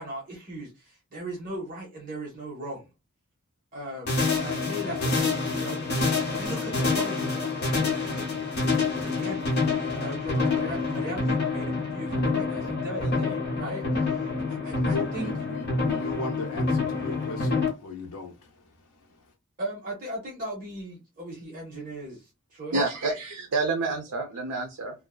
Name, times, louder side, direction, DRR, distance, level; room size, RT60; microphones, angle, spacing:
voice 1, 0.0-2.9 3.7-5.8 6.3-8.4 8.7-15.3 19.6-22.8, right 1 dB, 40° right, 0.8 m, -38 dB
sound 1, 4.1-17.7, left 3 dB, 45° left, 0.9 m, -27 dB
voice 2, 14.6-19.2, left 2 dB, 80° left, 0.5 m, -37 dB
voice 3, 22.7-25.1, right 3 dB, 80° right, 0.5 m, -28 dB
2.5 x 2.1 x 2.3 m
head